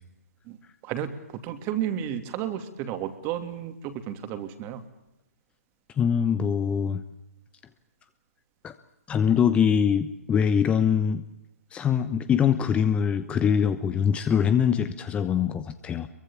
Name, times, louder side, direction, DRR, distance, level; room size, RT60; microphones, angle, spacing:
voice 1, 0.8-4.8, right 10 dB, 25° right, 9 dB, 2.8 m, -32 dB
voice 2, 6.0-7.0 8.6-8.7 9.1-11.2 11.7-16.1, left 7 dB, 15° left, 11 dB, 1.0 m, -23 dB
24.5 x 23.5 x 7.2 m, 0.88 s
figure-of-eight pair, 130°, 8 cm